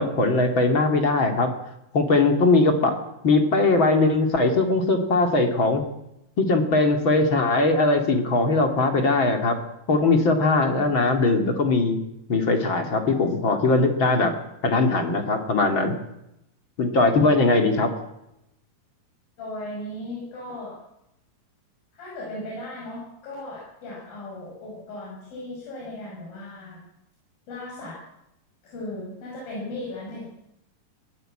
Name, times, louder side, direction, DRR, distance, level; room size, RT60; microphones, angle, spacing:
voice 1, 0.0-1.5 1.9-3.0 3.2-5.8 6.4-9.6 9.9-12.0 12.3-14.3 14.6-15.9 16.8-17.9, left 3 dB, 40° left, 5 dB, 2.7 m, -20 dB
voice 2, 19.4-20.8 22.0-26.8 27.5-28.0 28.6-30.2, left 1 dB, 85° left, -4 dB, 7.8 m, -36 dB
21.0 x 17.0 x 8.8 m, 0.85 s
omnidirectional pair, 4.0 m